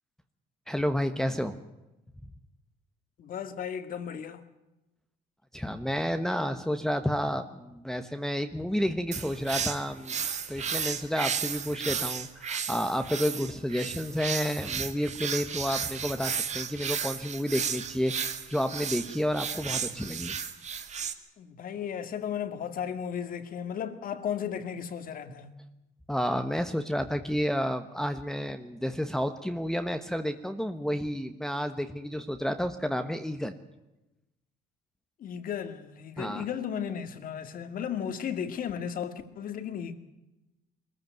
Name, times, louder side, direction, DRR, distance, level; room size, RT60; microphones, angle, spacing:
voice 1, 0.7-1.5 5.5-10.1 10.5-20.4 26.1-33.5 36.2-36.4, equal, 5° left, 1.2 m, -30 dB
voice 2, 3.2-4.4 21.4-25.6 35.2-39.9, left 8 dB, 55° left, 2.2 m, -35 dB
sound 1, 9.1-21.1, right 7 dB, 45° right, 1.9 m, -34 dB
22.5 x 15.0 x 9.3 m
cardioid pair, 110°, 17 cm